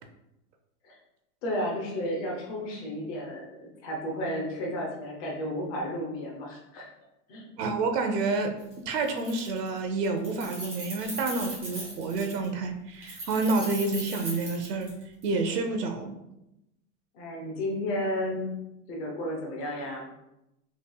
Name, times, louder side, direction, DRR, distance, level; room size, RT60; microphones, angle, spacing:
voice 1, 1.4-6.9 7.3-7.5 17.1-18.5 18.9-20.1, left 1 dB, 25° left, -1 dB, 0.6 m, -33 dB
voice 2, 7.6-8.5 8.9-14.9 15.2-16.1, right 3 dB, 90° right, 5 dB, 0.9 m, -29 dB
Keys jangling, 8.6-8.7 9.0-9.8 10.0-12.5 13.0-15.3, right 1 dB, 15° right, 0.7 m, -39 dB
5.7 x 3.3 x 2.3 m, 0.89 s
supercardioid pair, 170°, 46 cm